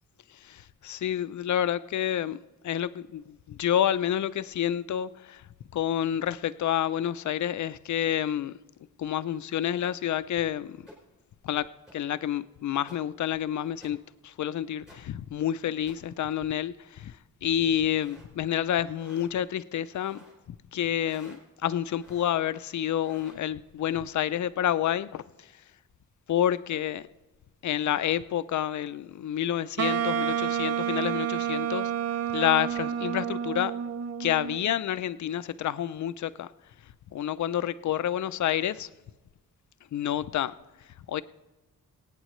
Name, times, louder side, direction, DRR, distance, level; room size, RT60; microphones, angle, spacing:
voice 1, 0.3-2.4 2.6-8.6 9.0-10.9 11.4-14.0 14.2-20.2 20.5-25.6 26.3-27.1 27.6-31.9 32.3-33.7 34.2-36.5 36.8-38.9 39.9-41.2, left 10 dB, 60° left, 0.5 m, -29 dB
sound 1, 9.8-9.9 10.9-11.0 11.9-12.0 12.9-13.0 13.8-13.9 14.9-15.0 15.9-16.0 17.8-18.3 18.9-19.3 19.9-20.4 21.0-21.4 22.0-22.3 22.9-23.4, equal, ahead, 4.3 m, -53 dB
Wind instrument woodwind instrument, 29.8-34.8, right 9 dB, 50° right, 0.4 m, -29 dB
24.0 x 9.0 x 3.1 m
wide cardioid pair, 170°, 33 cm